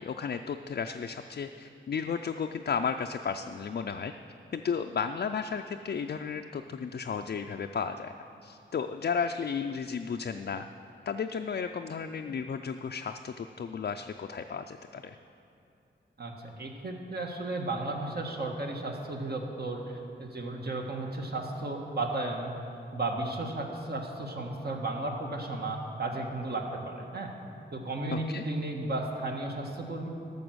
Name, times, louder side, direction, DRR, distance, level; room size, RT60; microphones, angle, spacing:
voice 1, 0.0-4.1 4.5-8.1 8.4-10.7 11.1-15.2 28.1-28.4, left 6 dB, 50° left, 5 dB, 0.4 m, -33 dB
voice 2, 16.2-22.5 22.9-27.3 27.7-30.1, right 2 dB, 50° right, 1 dB, 1.5 m, -34 dB
12.5 x 7.0 x 6.3 m, 2.6 s
wide cardioid pair, 75°, 20 cm